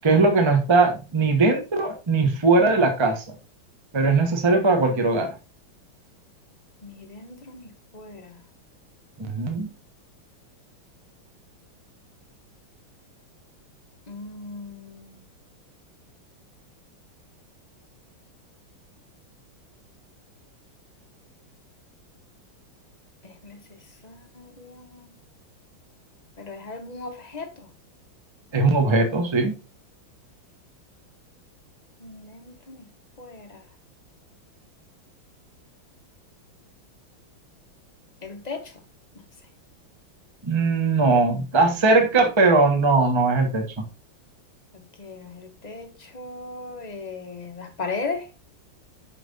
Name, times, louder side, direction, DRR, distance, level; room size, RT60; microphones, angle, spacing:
voice 1, 0.0-3.3 3.9-5.3 9.2-9.7 28.5-29.5 40.4-43.8, right 3 dB, 20° right, 0.9 m, -20 dB
voice 2, 6.8-8.4 14.1-15.2 23.2-25.1 26.4-27.7 32.0-32.9 33.2-33.6 38.2-38.8 39.1-39.2 44.7-48.3, left 4 dB, 30° left, 0.8 m, -37 dB
6.0 x 5.9 x 4.0 m
omnidirectional pair, 2.3 m